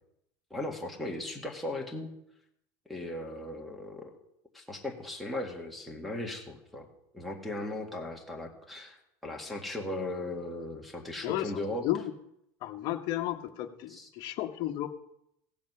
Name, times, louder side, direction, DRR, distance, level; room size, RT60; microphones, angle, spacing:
voice 1, 0.5-2.1 2.9-4.1 4.5-6.9 7.1-11.9 13.9-14.1, left 1 dB, ahead, -1 dB, 1.9 m, -37 dB
voice 2, 12.6-14.9, left 13 dB, 55° left, 5 dB, 1.1 m, -33 dB
16.0 x 7.2 x 5.6 m, 0.79 s
supercardioid pair, 135°, 9 cm